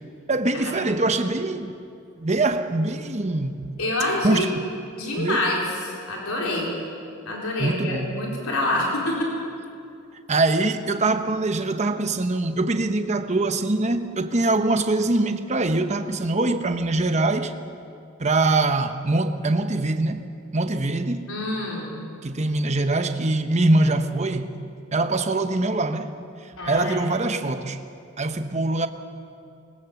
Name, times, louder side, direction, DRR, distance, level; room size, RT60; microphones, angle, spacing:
voice 1, 0.3-1.7 2.2-3.6 4.2-4.6 5.2-5.4 7.6-8.1 10.3-17.5 18.2-20.3 20.5-21.3 22.2-24.5 24.9-26.1 26.6-27.8 28.2-28.9, right 2 dB, 30° right, 0.9 m, -23 dB
voice 2, 3.8-4.5 5.0-6.7 7.3-9.3 21.3-22.0 26.6-27.1, left 1 dB, 80° left, 4.1 m, -27 dB
21.5 x 18.5 x 7.1 m
head